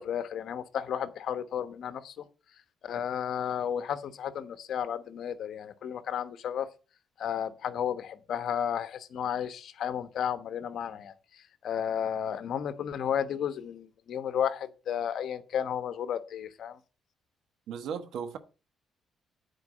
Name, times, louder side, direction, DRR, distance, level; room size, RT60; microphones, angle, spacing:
voice 1, 0.0-2.2 2.8-6.7 7.2-16.8, left 9 dB, 70° left, 1.1 m, -33 dB
voice 2, 17.7-18.4, right 7 dB, 80° right, 1.2 m, -36 dB
9.5 x 4.7 x 6.2 m
cardioid pair, 90°, 0 cm